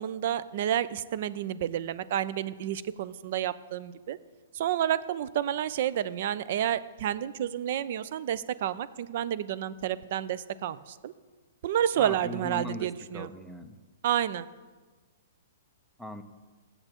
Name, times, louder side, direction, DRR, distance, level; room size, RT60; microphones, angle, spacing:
voice 1, 0.0-4.2 4.6-10.8 11.0-11.1 11.6-13.3 14.0-14.5, right 10 dB, 55° right, 16 dB, 0.4 m, -30 dB
voice 2, 12.0-13.8 16.0-16.2, left 1 dB, 5° right, 9 dB, 0.5 m, -40 dB
14.5 x 7.8 x 2.9 m, 1.4 s
hypercardioid pair, 150°, 0 cm